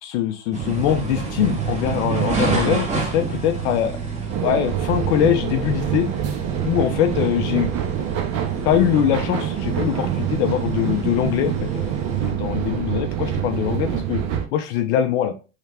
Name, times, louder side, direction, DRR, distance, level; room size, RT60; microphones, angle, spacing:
voice 1, 0.0-4.0 4.4-6.1 6.6-7.7 8.6-11.9 12.2-14.2 14.5-15.3, left 11 dB, 60° left, 6 dB, 0.6 m, -22 dB
sound 1, 0.5-12.3, right 5 dB, 20° right, 1.0 m, -29 dB
sound 2, 4.3-14.5, right 9 dB, 40° right, 0.7 m, -26 dB
3.2 x 2.4 x 3.2 m, 0.33 s
hypercardioid pair, 110°, 39 cm